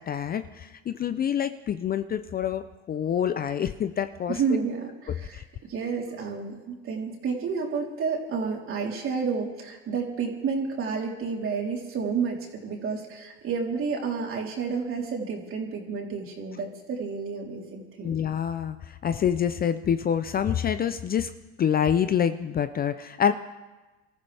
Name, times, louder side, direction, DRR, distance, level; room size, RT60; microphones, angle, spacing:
voice 1, 0.0-4.4 5.3-5.4 18.0-21.3 21.6-23.3, left 8 dB, 30° left, 10 dB, 0.6 m, -26 dB
voice 2, 4.3-18.2, right 5 dB, 40° right, 0 dB, 3.7 m, -30 dB
25.5 x 14.0 x 3.5 m, 1.2 s
supercardioid pair, 105°, 32 cm